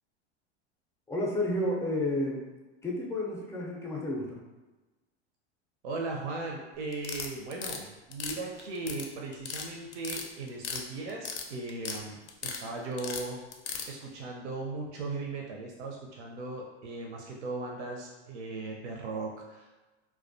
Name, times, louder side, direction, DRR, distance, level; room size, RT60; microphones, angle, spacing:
voice 1, 1.1-2.4 2.8-4.4, left 1 dB, 10° left, -3 dB, 0.4 m, -31 dB
voice 2, 5.8-13.4 13.9-19.8, right 3 dB, 90° right, -1 dB, 0.5 m, -38 dB
sound 1, 6.9-7.8 8.1-9.1 9.3-9.7 9.9-10.8 11.1-12.0 12.3-12.6 13.0-13.9, left 6 dB, 80° left, 0.5 m, -36 dB
2.3 x 2.1 x 2.5 m, 1.2 s
hypercardioid pair, 110°, 33 cm